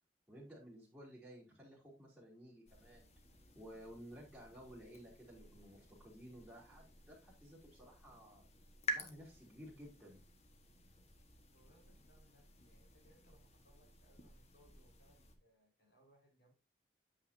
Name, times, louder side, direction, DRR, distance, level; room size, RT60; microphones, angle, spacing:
voice 1, 0.3-3.1 3.5-8.4 8.9-10.2, equal, 5° right, 3.3 m, -55 dB
sound 1, 2.7-15.3, left 1 dB, 35° left, 1.3 m, -51 dB
voice 2, 11.5-16.5, equal, 75° left, 4.9 m, -70 dB
8.9 x 7.6 x 2.7 m
head